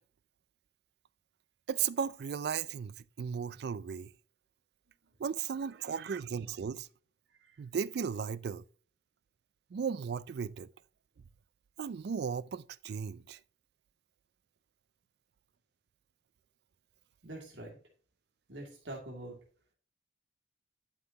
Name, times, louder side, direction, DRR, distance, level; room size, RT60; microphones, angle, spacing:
voice 1, 1.7-4.1 5.2-6.9 7.6-8.6 9.7-10.7 11.8-13.4, right 7 dB, 60° right, 0.3 m, -35 dB
voice 2, 7.3-7.6 17.2-17.8 18.5-19.4, right 1 dB, 80° right, 2.4 m, -45 dB
11.5 x 5.8 x 2.9 m
head